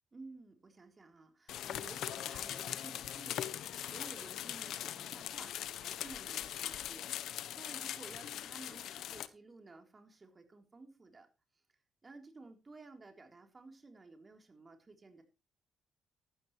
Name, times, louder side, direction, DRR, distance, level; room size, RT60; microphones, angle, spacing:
voice 1, 0.1-11.3 11.5-11.6 12.0-15.2, right 3 dB, 30° right, 4 dB, 3.7 m, -54 dB
sound 1, 1.5-9.3, left 11 dB, 80° left, 0.9 m, -41 dB
14.0 x 12.5 x 3.2 m, 0.30 s
cardioid pair, 90°, 0 cm